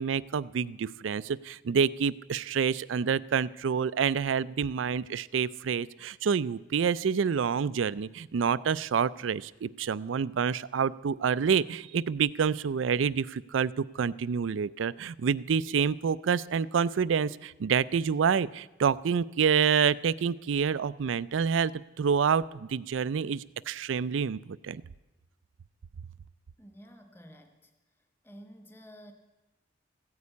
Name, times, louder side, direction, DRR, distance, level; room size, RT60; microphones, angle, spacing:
voice 1, 0.0-21.7 22.0-24.8, right 6 dB, 90° right, 19 dB, 0.4 m, -28 dB
voice 2, 26.6-27.7 28.0-29.1, equal, 10° left, 6 dB, 1.2 m, -51 dB
15.0 x 9.6 x 8.3 m, 1.0 s
head